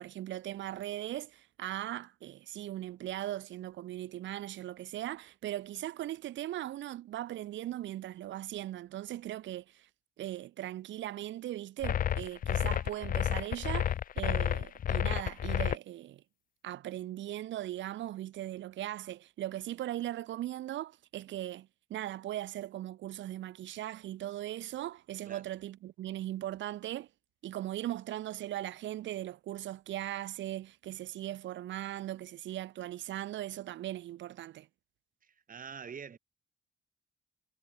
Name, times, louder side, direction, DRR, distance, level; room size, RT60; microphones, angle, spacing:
voice 1, 0.0-9.9 10.2-16.2 16.6-27.1 27.4-34.7, right 13 dB, 70° right, 0.7 m, -39 dB
sound 1, 11.8-15.8, left 10 dB, 45° left, 0.5 m, -30 dB
voice 2, 35.2-36.2, right 7 dB, 45° right, 2.5 m, -45 dB
cardioid pair, 90°, 20 cm